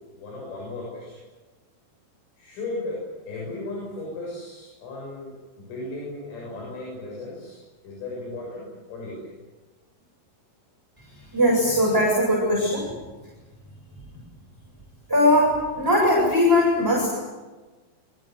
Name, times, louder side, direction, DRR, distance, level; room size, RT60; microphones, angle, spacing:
voice 1, 0.1-1.2 2.4-9.3, left 2 dB, 90° left, -3 dB, 9.6 m, -36 dB
voice 2, 11.0-12.9 15.1-17.1, left 1 dB, 5° right, -4 dB, 7.2 m, -20 dB
27.0 x 24.0 x 7.8 m, 1.3 s
omnidirectional pair, 5.6 m